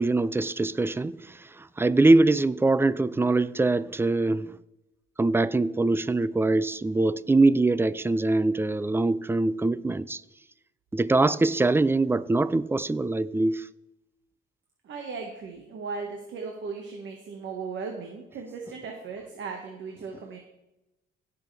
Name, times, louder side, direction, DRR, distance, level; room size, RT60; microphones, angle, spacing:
voice 1, 0.0-4.5 5.2-10.2 10.9-13.7, right 2 dB, 10° right, 0.4 m, -23 dB
voice 2, 14.8-20.4, right 4 dB, 70° right, 1.6 m, -37 dB
17.0 x 6.9 x 3.4 m
cardioid pair, 90°, 20 cm